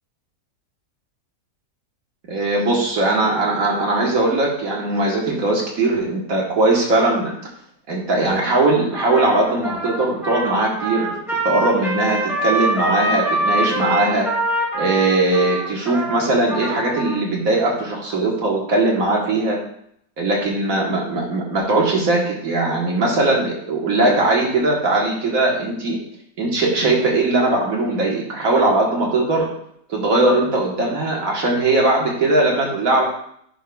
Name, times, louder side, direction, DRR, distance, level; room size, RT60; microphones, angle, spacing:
voice 1, 2.3-7.3 7.9-11.1 11.4-14.3 14.7-19.6 20.2-26.0 26.4-29.5 29.9-33.0, right 2 dB, 55° right, -2 dB, 1.8 m, -19 dB
Trumpet, 8.9-17.2, right 1 dB, ahead, 1.4 m, -24 dB
10.0 x 5.0 x 2.3 m, 0.69 s
omnidirectional pair, 1.8 m